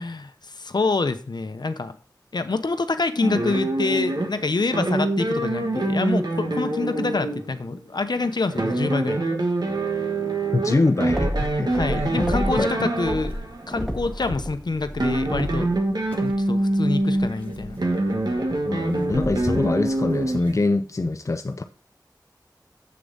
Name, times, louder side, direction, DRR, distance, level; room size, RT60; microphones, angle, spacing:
voice 1, 0.0-2.0 2.3-9.2 11.7-15.7 16.2-17.8, left 3 dB, 70° left, 0.8 m, -26 dB
sound 1, 3.2-13.8 14.8-20.7, right 2 dB, 65° right, 1.4 m, -25 dB
voice 2, 10.5-12.3 12.6-12.9 18.7-21.6, left 2 dB, 45° left, 0.5 m, -24 dB
sound 2, 11.1-12.7 13.0-15.8, equal, ahead, 1.6 m, -30 dB
sound 3, 11.7-20.6, left 1 dB, 20° left, 2.1 m, -42 dB
7.7 x 6.8 x 3.9 m
wide cardioid pair, 55°, 8 cm